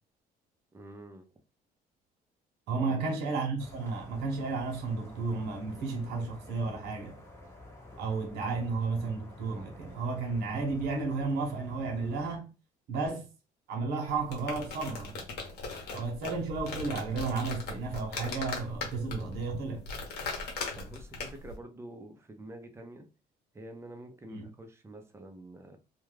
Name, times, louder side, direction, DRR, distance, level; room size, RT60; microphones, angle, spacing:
voice 1, 0.7-1.3 2.7-3.2 20.8-23.0 23.5-25.8, right 1 dB, 15° right, 0.6 m, -47 dB
voice 2, 2.7-7.1 8.0-12.5 12.9-13.3 13.7-15.2 15.9-19.8 24.3-24.5, right 4 dB, 80° right, 0.9 m, -33 dB
sound 1, 3.6-12.4, left 1 dB, 15° left, 0.9 m, -50 dB
sound 2, 14.1-21.6, left 3 dB, 75° left, 1.0 m, -39 dB
2.3 x 2.3 x 3.2 m
cardioid pair, 110°, 17 cm